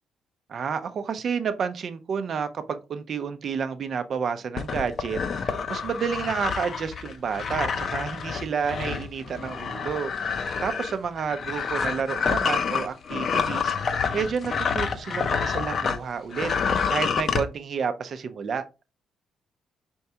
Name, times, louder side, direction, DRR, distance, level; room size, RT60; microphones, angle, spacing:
voice 1, 0.5-18.6, right 6 dB, 55° right, 0.5 m, -30 dB
sound 1, 4.6-16.0 16.3-17.4, left 6 dB, 50° left, 0.5 m, -28 dB
4.5 x 2.8 x 3.4 m
cardioid pair, 90°, 0 cm